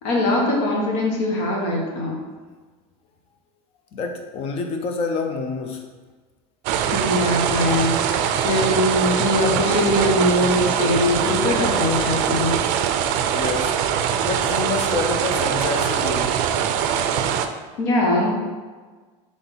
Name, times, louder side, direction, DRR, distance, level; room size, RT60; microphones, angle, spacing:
voice 1, 0.0-2.2 6.9-12.6 17.8-18.4, left 1 dB, 75° left, -1 dB, 1.2 m, -22 dB
voice 2, 3.9-5.8 13.3-13.8 14.2-16.3, left 4 dB, 40° left, 4 dB, 0.6 m, -27 dB
sound 1, 6.6-17.5, right 8 dB, 65° right, 0.4 m, -22 dB
3.9 x 3.5 x 3.9 m, 1.4 s
supercardioid pair, 125°, 15 cm